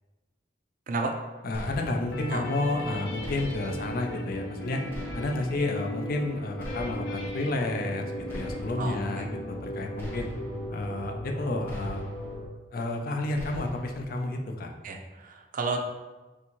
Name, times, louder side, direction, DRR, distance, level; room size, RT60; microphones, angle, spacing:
voice 1, 1.4-4.8 5.1-10.3 10.7-12.1 12.7-14.7, left 2 dB, 55° left, 3 dB, 0.5 m, -31 dB
sound 1, 1.5-2.2 3.2-3.9 4.9-5.6 6.6-7.3 8.3-9.0 10.0-10.7 11.7-12.4 13.3-14.0, equal, 15° left, 1.0 m, -41 dB
sound 2, 1.7-12.5, equal, 35° left, 0.9 m, -38 dB
sound 3, 2.1-10.6, left 1 dB, 85° left, 0.8 m, -44 dB
voice 2, 8.8-9.3 14.8-15.8, right 3 dB, 50° right, 3 dB, 0.5 m, -32 dB
3.4 x 2.7 x 4.5 m, 1.2 s
head